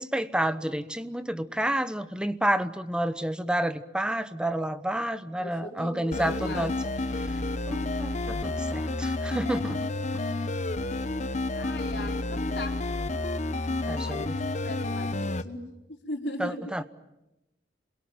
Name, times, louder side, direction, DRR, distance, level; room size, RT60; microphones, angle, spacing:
voice 1, 0.0-6.7 7.2-7.3 7.7-10.2 13.9-14.3 16.4-16.8, right 1 dB, 5° right, 12 dB, 1.0 m, -30 dB
voice 2, 5.4-6.7 10.1-10.4 11.5-12.8 13.9-15.6 16.1-16.6, left 1 dB, 75° left, 3 dB, 4.5 m, -38 dB
sound 1, 6.1-15.4, left 2 dB, 40° left, 1.1 m, -30 dB
28.5 x 22.0 x 9.3 m, 0.93 s
head